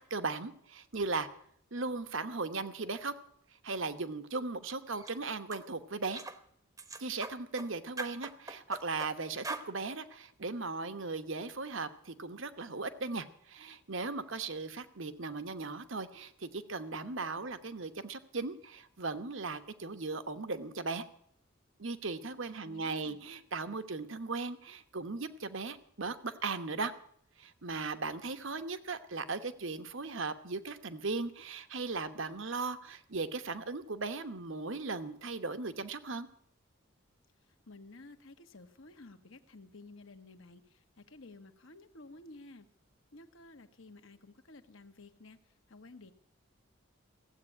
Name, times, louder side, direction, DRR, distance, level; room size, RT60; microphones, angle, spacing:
voice 1, 0.1-1.3 1.7-3.1 3.6-6.2 7.0-21.0 21.8-26.9 27.4-36.3, right 3 dB, 65° right, 10 dB, 1.1 m, -37 dB
sound 1, 4.9-5.1 5.5-5.7 6.1-6.4 6.8-7.7 8.0-9.1 9.4-9.7, right 3 dB, 15° right, 0.9 m, -41 dB
voice 2, 22.6-23.2 37.4-42.7 43.1-46.1, left 2 dB, 70° left, 7 dB, 1.3 m, -53 dB
16.5 x 8.3 x 9.8 m, 0.66 s
head